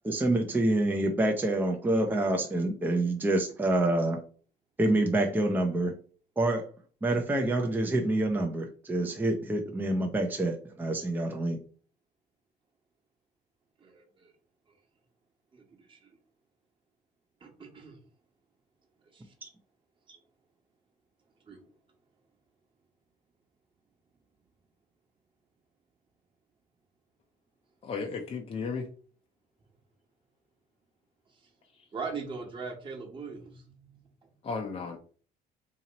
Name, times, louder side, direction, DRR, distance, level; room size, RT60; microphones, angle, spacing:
voice 1, 0.0-4.2 4.8-5.9 6.4-6.6 7.0-11.6 19.4-19.5, right 1 dB, 10° right, 2 dB, 0.5 m, -27 dB
voice 2, 13.8-14.3 15.5-16.2 17.4-18.0 19.1-19.3 20.1-20.2 21.4-21.6 31.3-31.5 31.9-34.3, right 5 dB, 30° right, 0 dB, 1.2 m, -41 dB
voice 3, 27.8-28.9 34.4-35.0, left 4 dB, 35° left, 2 dB, 0.6 m, -34 dB
2.9 x 2.8 x 4.0 m, 0.41 s
cardioid pair, 110°, 17 cm